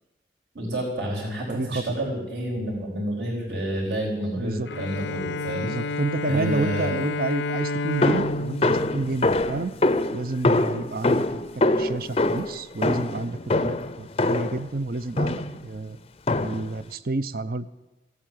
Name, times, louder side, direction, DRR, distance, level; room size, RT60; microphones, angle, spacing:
voice 1, 0.5-5.7 6.2-7.0, right 1 dB, 75° right, -2 dB, 4.3 m, -29 dB
voice 2, 1.5-1.9 4.4-4.7 5.6-9.7 10.1-16.0 16.4-17.7, right 2 dB, 55° right, 15 dB, 0.6 m, -30 dB
Bowed string instrument, 4.7-10.1, left 2 dB, 80° left, 0.5 m, -31 dB
sound 1, 8.0-14.7 15.2-15.6 16.3-16.8, left 2 dB, 30° left, 0.5 m, -24 dB
16.0 x 8.5 x 9.3 m, 1.0 s
head